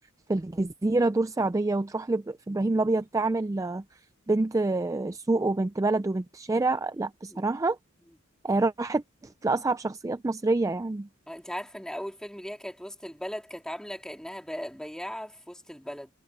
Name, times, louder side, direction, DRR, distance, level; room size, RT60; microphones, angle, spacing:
voice 1, 0.3-3.8 4.3-7.8 8.4-11.1, right 2 dB, 15° right, 0.3 m, -27 dB
voice 2, 11.3-16.1, equal, 5° left, 2.4 m, -38 dB
head